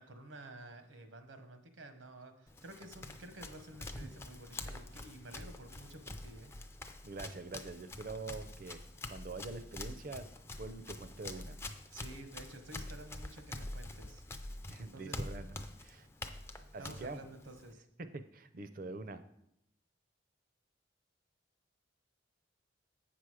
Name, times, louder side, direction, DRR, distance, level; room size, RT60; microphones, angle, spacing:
voice 1, 0.0-6.5 11.9-14.2 14.9-15.2 16.8-17.9, right 1 dB, 80° right, 7 dB, 1.0 m, -51 dB
Run, 2.5-17.7, left 2 dB, 15° left, 0.4 m, -46 dB
voice 2, 7.0-11.6 14.7-16.1 16.7-17.3 18.0-19.2, right 3 dB, 45° right, 11 dB, 0.5 m, -45 dB
7.9 x 6.0 x 4.8 m, 0.78 s
head